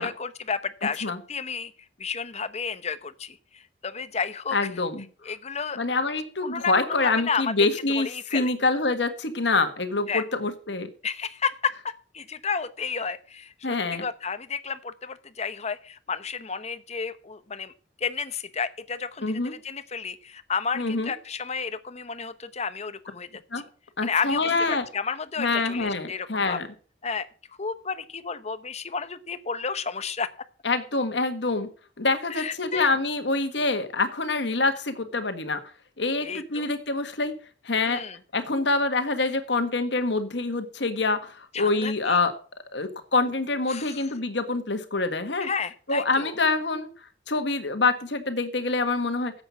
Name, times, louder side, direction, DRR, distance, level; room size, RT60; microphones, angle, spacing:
voice 1, 0.0-1.7 2.0-4.6 5.2-5.8 6.4-6.7 7.0-7.5 7.9-8.5 10.1-10.2 11.0-13.5 13.9-17.7 18.0-23.3 24.0-26.6 27.0-27.3 27.6-30.3 32.3-32.9 36.2-36.7 37.9-38.2 41.5-42.2 43.7-44.0 45.4-46.3, left 5 dB, 35° left, 12 dB, 0.9 m, -32 dB
voice 2, 4.5-5.0 5.8-10.9 13.6-14.0 19.2-19.5 20.7-21.1 23.5-23.6 24.0-24.8 25.4-26.7 30.6-31.7 32.0-35.6 36.0-37.3 37.6-38.0 38.3-42.3 42.7-45.5 45.9-46.9 47.3-49.3, left 3 dB, 70° left, 8 dB, 1.6 m, -26 dB
10.0 x 7.9 x 7.1 m, 0.40 s
head